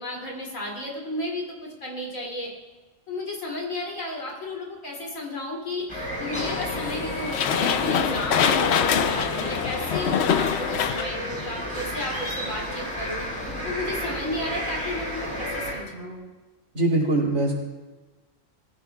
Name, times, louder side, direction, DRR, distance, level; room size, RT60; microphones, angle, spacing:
voice 1, 0.0-2.5 3.1-13.3 13.6-16.3, left 1 dB, 80° left, -2 dB, 3.3 m, -33 dB
sound 1, 5.9-15.7, equal, 20° left, 5.3 m, -32 dB
sound 2, 6.3-11.0, left 7 dB, 60° left, 0.8 m, -24 dB
voice 2, 16.7-17.5, right 2 dB, 85° right, -3 dB, 3.3 m, -22 dB
21.0 x 15.0 x 2.3 m, 1.2 s
omnidirectional pair, 1.4 m